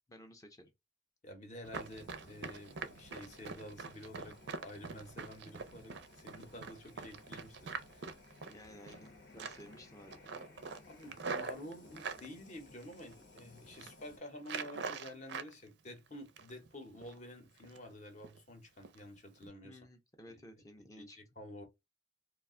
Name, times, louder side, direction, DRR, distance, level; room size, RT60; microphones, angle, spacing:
voice 1, 0.1-0.7 8.4-10.4 19.6-21.2, left 1 dB, 20° left, 0.5 m, -55 dB
voice 2, 1.2-8.1 10.9-19.8 20.3-20.4 21.0-21.6, left 1 dB, 40° left, 0.8 m, -50 dB
Run, 1.6-9.1 9.4-9.8 10.1-12.3 12.8-13.4 13.7-13.9 14.4-15.5 15.9-16.7 17.0-17.2 17.6-17.9 18.2-18.4 18.8-19.0 19.4-19.5, right 5 dB, 70° right, 0.4 m, -44 dB
Fire, 1.8-14.2, left 2 dB, 85° left, 1.1 m, -59 dB
2.4 x 2.2 x 3.5 m
head